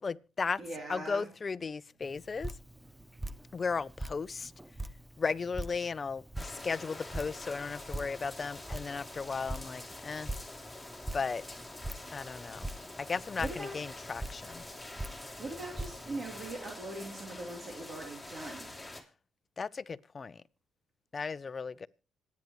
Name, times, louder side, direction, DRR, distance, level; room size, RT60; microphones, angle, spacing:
voice 1, 0.0-0.6 0.9-2.5 3.5-4.5 5.2-10.3 11.1-11.4 12.1-12.7 13.0-14.6 19.6-20.4 21.1-21.9, left 5 dB, 40° left, 0.6 m, -35 dB
voice 2, 0.6-1.3 13.4-13.8 15.4-18.8, right 2 dB, 45° right, 3.3 m, -41 dB
Drip, 2.0-16.5, right 1 dB, 10° right, 0.9 m, -44 dB
sound 1, 6.4-19.0, left 2 dB, 5° left, 2.9 m, -46 dB
26.0 x 9.4 x 3.1 m
supercardioid pair, 65°, 0 cm